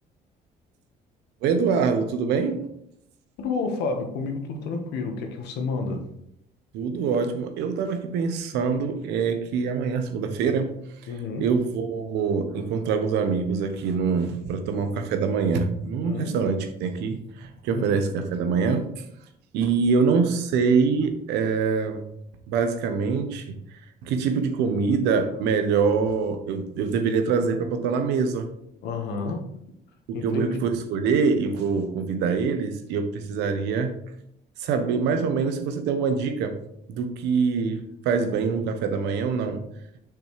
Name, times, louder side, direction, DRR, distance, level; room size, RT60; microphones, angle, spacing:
voice 1, 1.4-2.7 6.7-10.8 11.0-11.1 11.4-18.9 19.5-22.0 22.5-23.6 24.0-28.5 30.1-34.0 34.6-36.6 36.9-39.6, right 5 dB, 90° right, 8 dB, 1.0 m, -24 dB
voice 2, 3.4-6.0 11.1-11.5 16.0-16.5 17.7-17.8 28.8-29.5 30.1-30.7, left 4 dB, 80° left, 3 dB, 1.5 m, -30 dB
7.0 x 6.0 x 3.3 m, 0.74 s
cardioid pair, 110°, 17 cm